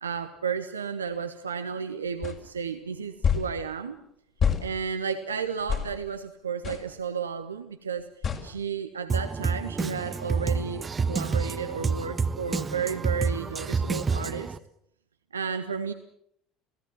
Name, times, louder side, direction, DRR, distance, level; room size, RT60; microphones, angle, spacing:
voice 1, 0.0-4.0 4.6-8.1 8.4-14.6 15.3-15.9, right 6 dB, 80° right, 8 dB, 1.3 m, -32 dB
sound 1, 2.2-2.4 3.2-3.5 4.4-4.6 5.7-5.9 6.6-6.8 8.2-8.4, left 7 dB, 40° left, 5.0 m, -25 dB
Drum kit, 9.1-14.6, right 5 dB, 25° right, 1.1 m, -28 dB
29.0 x 17.5 x 7.5 m, 0.70 s
figure-of-eight pair, 65°, 0 cm